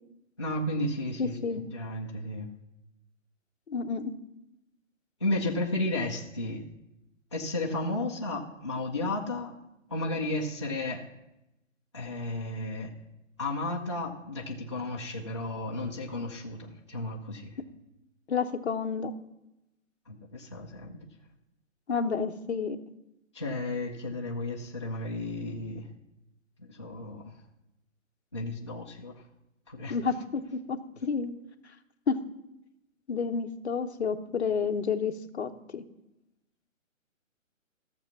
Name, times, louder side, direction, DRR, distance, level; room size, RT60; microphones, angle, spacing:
voice 1, 0.4-2.5 5.2-6.6 7.3-9.6 9.9-11.1 11.9-12.9 13.4-17.6 20.1-21.1 23.3-25.8 26.6-27.3 28.3-29.1 29.7-30.0, left 2 dB, 20° left, -3 dB, 0.5 m, -33 dB
voice 2, 1.2-1.6 3.7-4.1 18.3-19.1 21.9-22.8 29.9-31.3 32.1-32.2 33.1-35.8, left 5 dB, 55° left, 8 dB, 0.9 m, -30 dB
14.5 x 6.9 x 5.8 m, 0.91 s
hypercardioid pair, 170°, 40 cm